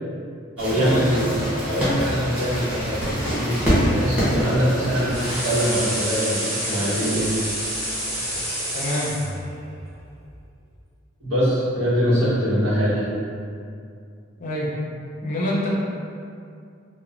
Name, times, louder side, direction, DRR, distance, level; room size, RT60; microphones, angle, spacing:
sound 1, 0.6-5.6, equal, 5° right, 0.7 m, -25 dB
voice 1, 0.6-3.6 3.9-7.3 11.2-13.1, equal, 80° right, -10 dB, 0.9 m, -23 dB
sound 2, 1.7-10.8, equal, 30° right, 0.3 m, -39 dB
sound 3, 5.1-9.3, right 1 dB, 55° right, 1.0 m, -28 dB
voice 2, 8.7-9.1 14.4-14.7 15.2-15.7, left 1 dB, 35° left, -5 dB, 0.5 m, -26 dB
2.9 x 2.1 x 2.4 m, 2.4 s
head